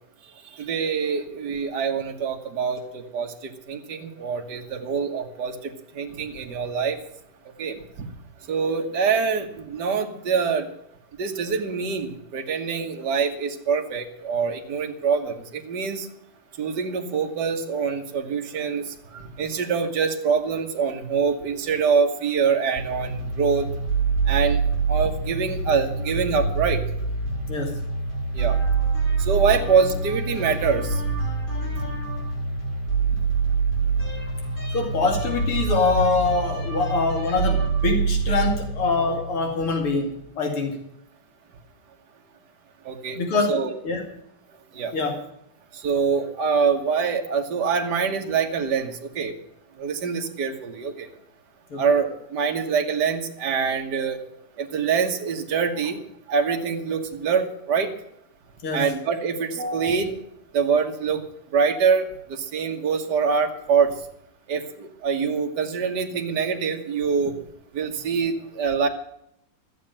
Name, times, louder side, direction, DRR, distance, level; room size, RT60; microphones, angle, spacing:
voice 1, 0.6-5.6 5.9-7.0 7.6-7.8 8.5-10.7 11.2-16.1 16.6-18.8 19.1-23.7 24.3-24.6 24.9-26.8 28.3-28.6 29.2-31.0 42.9-43.2 43.5-43.7 44.7-44.9 45.7-49.3 49.8-51.1 51.8-54.2 54.6-56.0 56.3-57.9 58.7-60.2 60.5-61.2 61.5-63.9 64.5-67.3 67.7-68.9, right 6 dB, 50° right, 3 dB, 2.0 m, -24 dB
sound 1, 22.8-40.1, right 4 dB, 25° left, 2.7 m, -26 dB
voice 2, 34.7-40.1 40.4-40.8 43.1-43.6 43.8-44.0 44.9-45.2 51.7-51.8 58.6-58.8, left 3 dB, 90° left, 2 dB, 3.4 m, -24 dB
15.0 x 7.7 x 8.9 m, 0.75 s
omnidirectional pair, 2.4 m